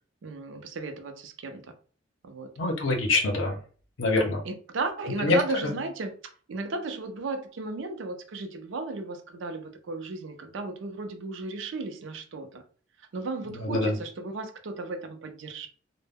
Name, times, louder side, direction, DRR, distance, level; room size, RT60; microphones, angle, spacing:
voice 1, 0.2-1.7 2.2-2.5 4.4-6.1 6.5-12.6 13.1-15.7, right 3 dB, 75° right, 0.4 m, -35 dB
voice 2, 2.6-3.6 4.0-4.4 5.2-5.4 5.6-5.7 13.6-14.0, left 2 dB, 85° left, 0.6 m, -25 dB
2.0 x 2.0 x 3.4 m
head